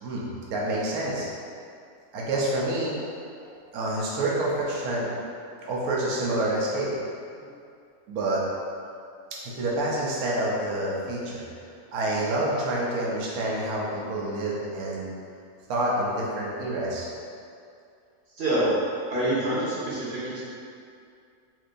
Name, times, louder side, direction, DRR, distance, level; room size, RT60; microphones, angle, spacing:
voice 1, 0.0-1.3 2.1-3.0 3.7-5.1 5.6-6.9 8.1-8.4 9.4-11.5 11.9-15.1 15.7-17.1, right 1 dB, 75° right, -5 dB, 1.1 m, -28 dB
voice 2, 18.4-18.7 19.1-20.4, right 1 dB, 50° right, -9 dB, 0.9 m, -26 dB
4.5 x 2.6 x 2.5 m, 2.4 s
omnidirectional pair, 1.6 m